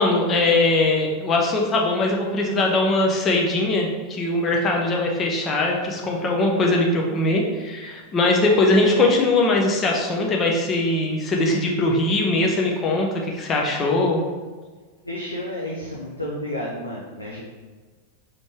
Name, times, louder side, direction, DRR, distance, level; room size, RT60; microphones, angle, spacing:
voice 1, 0.0-14.2, left 2 dB, 25° left, 0 dB, 0.8 m, -21 dB
voice 2, 15.0-17.4, left 1 dB, 85° left, -4 dB, 0.6 m, -31 dB
4.2 x 3.0 x 3.3 m, 1.4 s
figure-of-eight pair, 90°, 0 cm